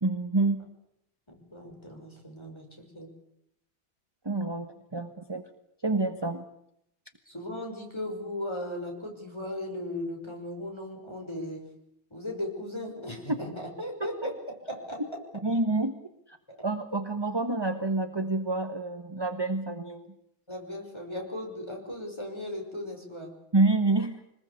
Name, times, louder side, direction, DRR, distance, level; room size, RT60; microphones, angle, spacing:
voice 1, 0.0-0.7 4.2-5.5 5.8-6.4 15.4-16.0 16.3-16.4 16.6-20.1 23.5-24.2, right 2 dB, 15° right, 7 dB, 1.0 m, -28 dB
voice 2, 1.3-3.1 7.3-11.6 12.1-14.4 14.7-15.2 16.5-16.6 20.5-23.3, left 1 dB, 10° left, 2 dB, 5.7 m, -37 dB
26.0 x 20.5 x 8.5 m, 0.76 s
omnidirectional pair, 2.2 m